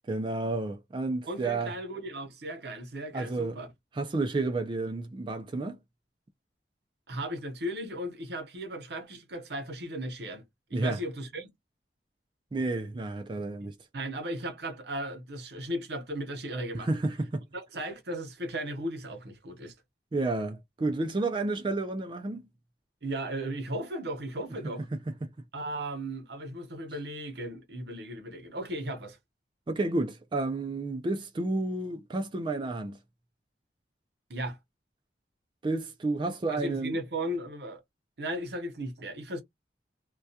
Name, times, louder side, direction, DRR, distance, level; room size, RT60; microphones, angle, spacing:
voice 1, 0.1-1.7 3.1-3.6 4.0-5.8 10.7-11.0 12.5-13.7 16.7-17.4 20.1-22.4 24.9-25.3 29.7-33.0 35.6-37.0, right 2 dB, 25° right, 0.3 m, -31 dB
voice 2, 1.3-3.7 7.1-10.4 10.7-11.5 13.9-16.9 17.5-19.7 23.0-24.9 25.5-29.2 34.3-34.6 36.5-37.8 38.2-39.4, right 1 dB, 70° right, 0.8 m, -36 dB
2.2 x 2.2 x 2.6 m
head